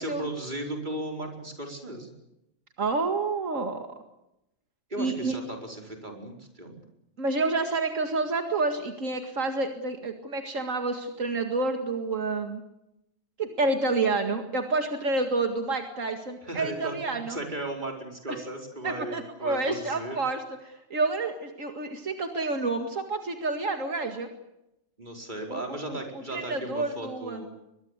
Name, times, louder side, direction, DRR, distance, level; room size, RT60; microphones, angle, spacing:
voice 1, 0.0-2.1 4.9-6.8 16.4-20.2 25.0-27.5, right 1 dB, 35° right, 2 dB, 4.9 m, -36 dB
voice 2, 2.8-3.9 5.0-5.4 7.2-12.6 13.4-17.4 18.3-18.4 18.8-24.3 25.5-26.0 26.3-27.4, right 3 dB, 80° right, 6 dB, 2.4 m, -29 dB
23.0 x 22.5 x 8.2 m, 0.87 s
omnidirectional pair, 1.3 m